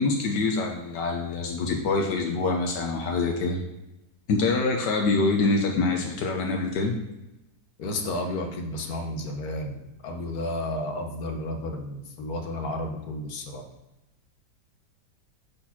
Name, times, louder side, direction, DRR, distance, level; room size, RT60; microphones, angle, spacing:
voice 1, 0.0-3.6 4.3-6.9, left 3 dB, 80° left, 2 dB, 1.5 m, -25 dB
voice 2, 7.8-13.6, left 1 dB, 65° left, 4 dB, 1.5 m, -32 dB
7.1 x 4.2 x 5.9 m, 0.99 s
omnidirectional pair, 1.8 m